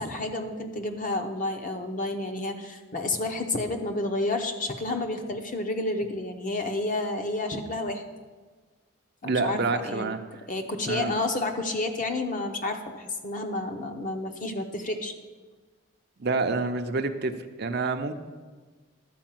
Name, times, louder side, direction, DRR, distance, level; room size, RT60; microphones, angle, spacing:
voice 1, 0.0-8.0 9.2-10.1 10.5-15.1, left 2 dB, 35° left, 5 dB, 0.8 m, -30 dB
voice 2, 9.2-10.2 10.9-11.1 16.2-18.1, right 3 dB, 50° right, 7 dB, 0.6 m, -28 dB
12.0 x 4.7 x 7.5 m, 1.4 s
head